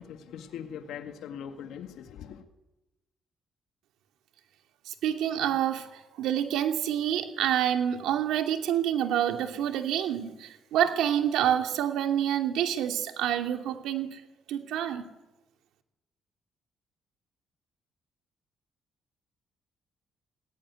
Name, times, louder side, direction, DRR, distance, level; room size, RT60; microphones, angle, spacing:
voice 1, 0.0-2.5, left 8 dB, 80° left, 1.9 m, -41 dB
voice 2, 4.9-14.2 14.5-15.1, right 10 dB, 90° right, 2.7 m, -27 dB
20.5 x 17.5 x 9.6 m
cardioid pair, 90°, 0 cm